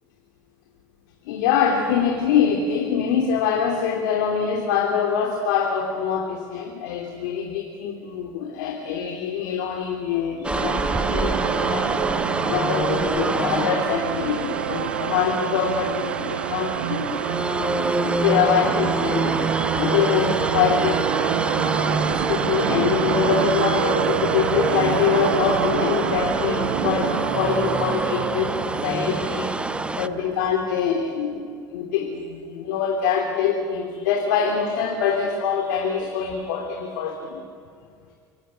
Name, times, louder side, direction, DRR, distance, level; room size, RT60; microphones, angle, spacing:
voice 1, 1.2-12.0 12.5-21.0 21.6-28.6 28.8-29.5 29.9-37.4, left 7 dB, 80° left, 2 dB, 2.9 m, -24 dB
sound 1, 10.4-30.1, right 2 dB, 10° right, 1.0 m, -27 dB
sound 2, 10.5-30.5, right 12 dB, 85° right, 1.0 m, -27 dB
25.5 x 21.5 x 9.8 m, 2.1 s
hypercardioid pair, 70°, 10 cm